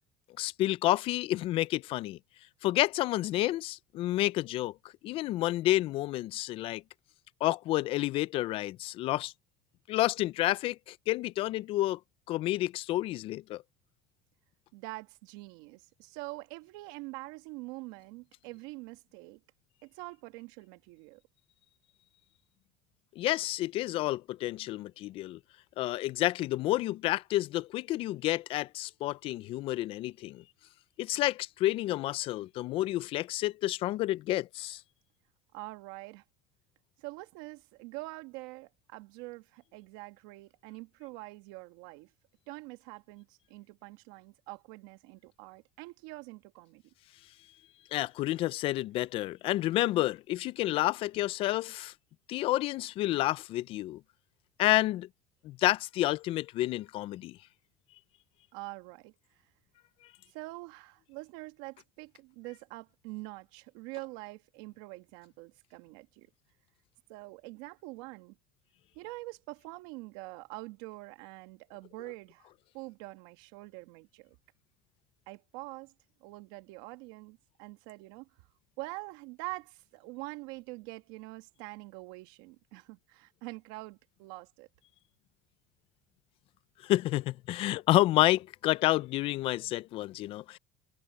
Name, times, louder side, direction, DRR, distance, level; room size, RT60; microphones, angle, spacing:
voice 1, 0.4-2.2 2.6-4.7 5.0-6.8 7.4-9.3 9.9-12.0 12.3-13.6 23.2-25.4 25.8-30.4 31.0-34.8 47.9-51.9 52.3-54.0 54.6-55.1 55.4-57.4 86.8-90.6, left 16 dB, 50° left, 0.5 m, -29 dB
voice 2, 14.7-19.4 19.8-21.2 35.5-36.2 37.0-42.1 42.5-46.8 58.5-59.1 60.3-66.3 67.1-68.4 69.0-72.5 72.7-74.4 75.3-75.9 76.2-78.3 78.8-84.7, right 22 dB, 80° right, 2.1 m, -45 dB
cardioid pair, 130°, 12 cm